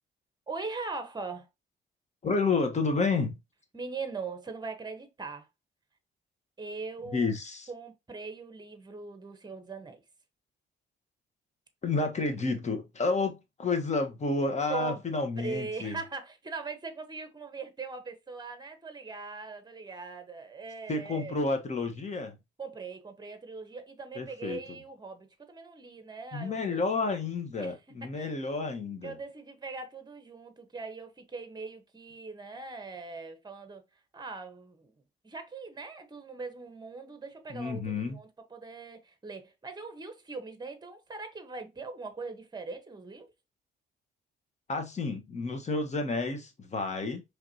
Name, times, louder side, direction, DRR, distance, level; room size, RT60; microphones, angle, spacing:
voice 1, 0.5-1.5 3.7-5.5 6.6-7.3 7.7-10.0 14.7-15.0 15.4-21.4 22.6-26.8 27.6-27.7 28.1-28.3 29.0-33.8 34.1-34.9 35.2-43.3, right 4 dB, 20° right, 1.1 m, -41 dB
voice 2, 2.2-3.4 7.1-7.7 11.8-16.0 20.9-22.4 24.1-24.6 26.3-29.2 37.5-38.2 44.7-47.2, left 3 dB, 35° left, 1.3 m, -30 dB
4.7 x 3.4 x 2.8 m
cardioid pair, 90°, 20 cm